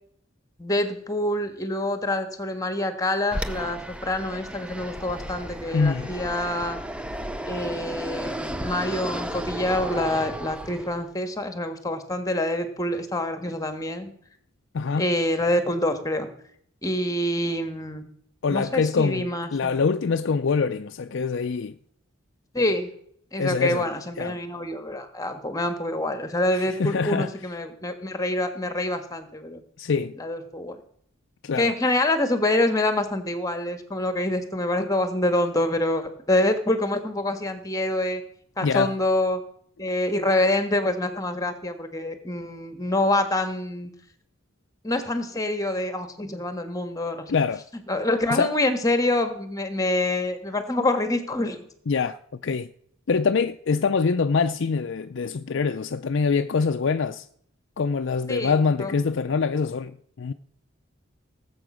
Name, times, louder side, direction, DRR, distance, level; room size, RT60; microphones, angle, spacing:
voice 1, 0.6-6.8 7.5-14.1 15.0-16.3 16.8-18.0 18.5-19.9 22.5-22.9 23.3-29.6 30.2-30.8 31.6-38.2 38.6-39.4 39.8-43.9 44.8-47.3 47.9-51.6 58.3-58.5 58.8-58.9, left 1 dB, 15° left, 1.5 m, -26 dB
Fixed-wing aircraft airplane, 3.3-11.1, right 1 dB, 5° right, 0.6 m, -34 dB
voice 2, 5.7-6.1 14.7-15.0 18.4-21.8 23.4-23.9 24.2-24.4 26.6-27.3 29.8-30.2 31.4-31.7 38.6-38.9 47.3-47.6 48.3-48.5 51.9-52.2 52.4-52.7 53.1-57.3 57.8-60.3, left 5 dB, 60° left, 0.5 m, -24 dB
18.5 x 7.9 x 6.2 m
head